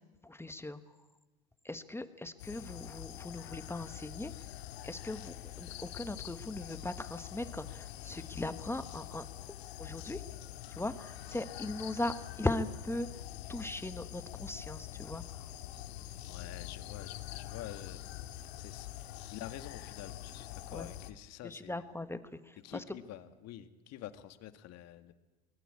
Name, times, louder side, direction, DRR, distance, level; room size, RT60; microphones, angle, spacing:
voice 1, 0.2-0.8 1.6-4.3 4.8-10.2 10.7-13.2 13.5-15.5 20.7-20.9 21.4-22.8, left 2 dB, 10° left, 11 dB, 1.3 m, -39 dB
sound 1, 2.4-21.1, left 13 dB, 80° left, 1.9 m, -45 dB
voice 2, 16.2-18.0 18.3-21.9 22.6-25.1, left 12 dB, 55° left, 9 dB, 2.0 m, -48 dB
24.0 x 20.0 x 8.6 m, 1.1 s
hypercardioid pair, 95°, 32 cm